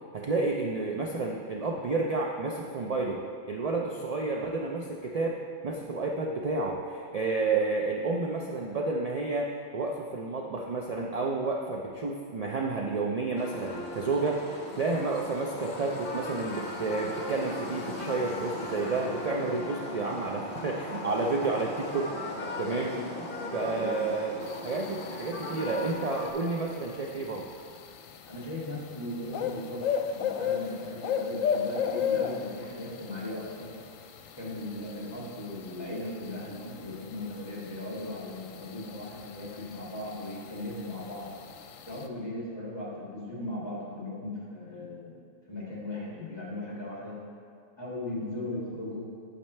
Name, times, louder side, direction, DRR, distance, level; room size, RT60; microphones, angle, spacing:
voice 1, 0.1-3.2 3.5-5.4 5.6-22.9 23.5-27.5, right 3 dB, 55° right, 0 dB, 0.4 m, -30 dB
sound 1, 13.4-26.3, left 2 dB, 45° left, 1.1 m, -38 dB
voice 2, 22.7-23.0 23.5-23.9 28.3-33.7 34.4-41.3 41.9-45.2 45.5-47.2 47.8-49.1, left 1 dB, 20° left, -6 dB, 2.1 m, -38 dB
sound 2, 24.4-42.1, left 7 dB, 85° left, 1.0 m, -36 dB
8.9 x 8.1 x 3.2 m, 2.5 s
omnidirectional pair, 1.3 m